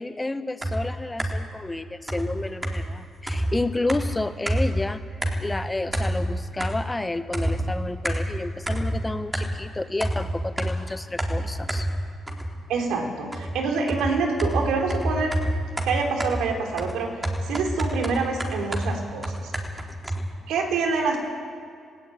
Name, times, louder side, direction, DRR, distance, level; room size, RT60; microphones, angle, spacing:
voice 1, 0.0-5.0 5.4-11.9, left 2 dB, 15° left, 10 dB, 1.0 m, -30 dB
sound 1, 0.6-1.6 2.1-4.9 5.2-5.6 5.9-7.0 7.3-9.7 10.0-12.7 13.3-20.3, right 1 dB, 15° right, 3.6 m, -28 dB
voice 2, 12.7-15.3 15.8-17.1 17.5-19.5 20.5-21.2, right 4 dB, 85° right, 2 dB, 4.0 m, -26 dB
17.5 x 17.0 x 9.5 m, 2.4 s
cardioid pair, 90°, 0 cm